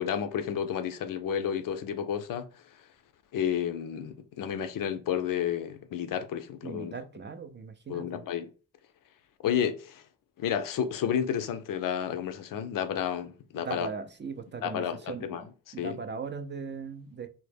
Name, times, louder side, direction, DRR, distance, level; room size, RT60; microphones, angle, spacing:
voice 1, 0.0-2.5 3.3-6.9 7.9-8.5 9.4-10.0 10.4-13.9 14.6-16.0, left 8 dB, 65° left, 0.5 m, -31 dB
voice 2, 6.6-8.3 13.6-15.4 15.7-17.3, right 5 dB, 30° right, 0.4 m, -39 dB
2.0 x 2.0 x 3.3 m
supercardioid pair, 50°, 35 cm